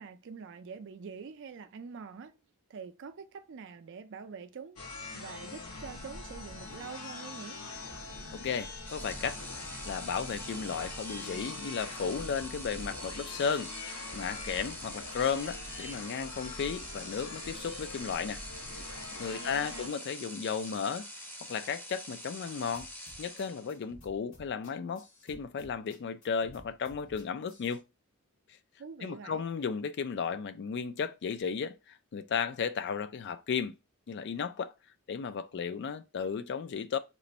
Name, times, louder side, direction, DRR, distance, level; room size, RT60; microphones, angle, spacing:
voice 1, 0.0-2.4 2.7-4.8 5.1-7.6 19.3-19.9 28.8-29.4, right 5 dB, 55° right, 0.4 m, -45 dB
sound 1, 4.8-19.9, left 2 dB, 90° left, 1.1 m, -44 dB
voice 2, 8.3-9.4 9.9-18.4 19.2-21.1 21.5-22.9 23.2-27.8 29.0-33.7 34.1-34.7 35.1-37.0, left 6 dB, 50° left, 0.3 m, -34 dB
sound 2, 8.8-23.9, equal, 10° left, 0.6 m, -45 dB
sound 3, 22.7-27.8, equal, 65° left, 1.4 m, -55 dB
3.1 x 2.5 x 4.1 m
head